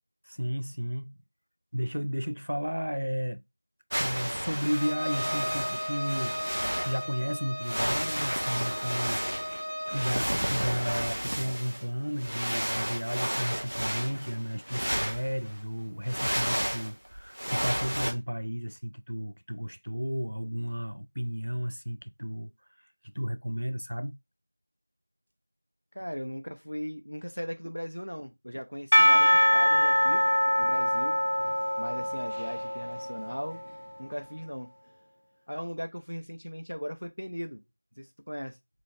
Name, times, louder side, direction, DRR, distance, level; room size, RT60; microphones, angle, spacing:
voice 1, 0.3-1.2 1.7-3.4 4.0-9.6 9.9-22.5 23.1-24.2, equal, 85° right, 0.5 m, -33 dB
sound 1, 3.9-7.1 7.6-15.5 16.0-18.1, equal, 25° right, 0.5 m, -32 dB
Bowed string instrument, 4.6-10.2, equal, 15° left, 0.9 m, -36 dB
voice 2, 25.9-30.2 30.6-31.2 31.8-33.6 34.0-34.7 35.5-37.6 38.0-38.6, equal, 85° left, 0.9 m, -38 dB
Percussion / Church bell, 28.9-33.7, equal, 50° left, 0.4 m, -24 dB
3.1 x 3.0 x 4.0 m
figure-of-eight pair, 180°, 0 cm